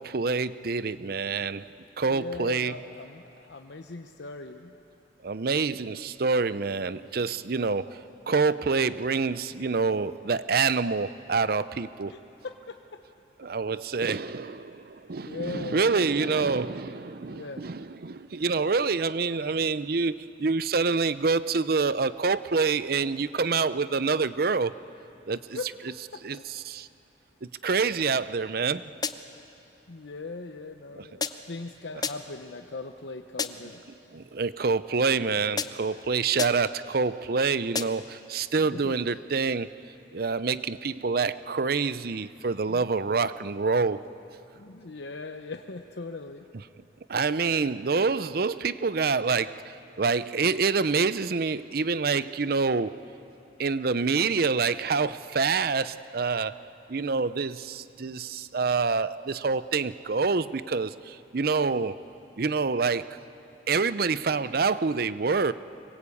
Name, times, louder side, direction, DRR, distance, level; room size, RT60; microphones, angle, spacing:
voice 1, 0.0-1.7 2.0-2.7 5.2-8.0 8.3-12.1 13.4-24.7 25.3-25.6 26.2-26.9 27.4-28.8 31.0-31.1 34.1-39.7 40.1-44.0 47.1-53.0 53.6-56.6 56.9-62.0 62.4-63.2 63.7-65.5, right 4 dB, 55° right, 15 dB, 0.6 m, -27 dB
voice 2, 2.1-4.7 12.1-12.2 12.4-13.0 15.2-16.5 17.3-17.7 25.5-25.7 26.1-26.4 29.9-33.8 38.5-39.0 44.5-46.5, left 3 dB, 80° left, 5 dB, 0.9 m, -39 dB
sound 1, 29.0-29.5 31.2-31.6 32.0-32.5 33.4-33.8 35.6-36.0 36.4-36.8 37.7-38.2, left 5 dB, 20° left, 0.7 m, -33 dB
24.5 x 22.0 x 8.5 m, 2.9 s
head